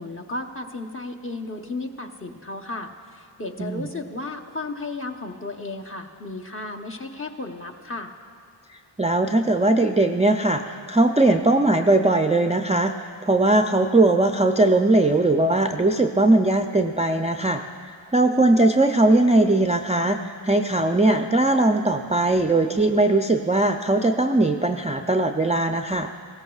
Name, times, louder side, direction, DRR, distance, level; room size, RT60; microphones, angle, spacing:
voice 1, 0.0-8.1, left 2 dB, 30° left, 2 dB, 0.9 m, -34 dB
voice 2, 9.0-12.9 13.3-26.1, right 2 dB, 15° right, 5 dB, 0.4 m, -20 dB
17.0 x 14.5 x 2.4 m, 2.2 s
wide cardioid pair, 50°, 45 cm